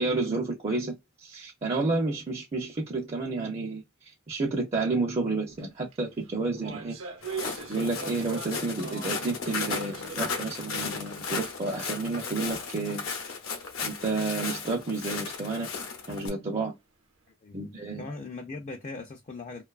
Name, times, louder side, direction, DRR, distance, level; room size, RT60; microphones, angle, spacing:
voice 1, 0.0-3.8 4.3-7.0 7.7-13.1 13.8-15.7 16.1-16.7 17.5-18.1, right 3 dB, 30° right, 0.5 m, -30 dB
sound 1, 5.5-5.7 5.9-9.3 9.7-10.6 10.9-11.0 11.7-11.8, right 5 dB, 80° right, 0.8 m, -41 dB
Walk footsteps, 7.2-16.3, left 4 dB, 75° left, 0.7 m, -35 dB
voice 2, 17.4-19.6, left 3 dB, 35° left, 0.4 m, -40 dB
2.5 x 2.3 x 2.3 m
head